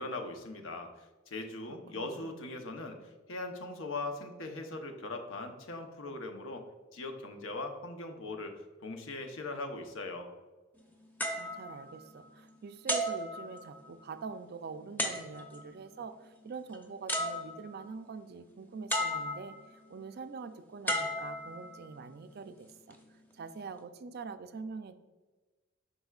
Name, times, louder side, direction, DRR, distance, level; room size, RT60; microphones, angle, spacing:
voice 1, 0.0-6.6 6.9-10.3, left 2 dB, 80° left, 5 dB, 0.9 m, -40 dB
voice 2, 1.9-2.4 11.4-25.0, right 4 dB, 55° right, 10 dB, 0.4 m, -44 dB
sound 1, 11.2-12.4 12.9-14.0 15.0-15.7 16.7-16.8 17.1-17.9 18.9-19.7 20.9-22.0 22.7-22.9, equal, 10° left, 0.8 m, -35 dB
7.8 x 5.6 x 2.4 m, 1.3 s
head